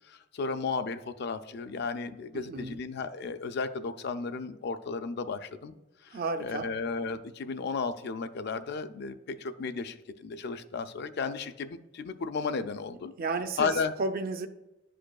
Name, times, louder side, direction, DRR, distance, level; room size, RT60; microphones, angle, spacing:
voice 1, 0.1-5.7 6.4-13.1 13.6-13.9, left 4 dB, 60° left, 10 dB, 0.4 m, -34 dB
voice 2, 6.1-6.7 13.2-13.7 14.0-14.5, right 3 dB, 50° right, 8 dB, 0.5 m, -32 dB
10.0 x 5.0 x 2.3 m, 0.97 s
head